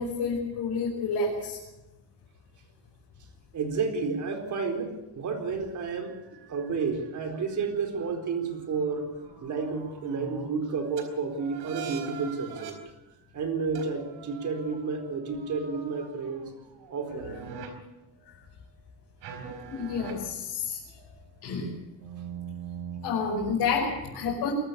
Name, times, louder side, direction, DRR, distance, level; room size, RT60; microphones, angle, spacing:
voice 1, 0.0-1.6 19.7-20.8 21.4-21.7 23.0-24.5, left 4 dB, 65° left, -3 dB, 5.7 m, -29 dB
voice 2, 3.5-6.2 6.5-9.1 9.4-12.8 13.3-16.4 16.9-17.4, right 4 dB, 45° right, 4 dB, 4.3 m, -31 dB
sound 1, 5.8-10.6 11.0-11.1 11.4-12.7 13.7-17.7 19.2-20.1 21.0-21.5 22.0-23.5, right 7 dB, 80° right, 4.5 m, -44 dB
22.5 x 14.0 x 8.4 m, 1.0 s
cardioid pair, 135°, 40 cm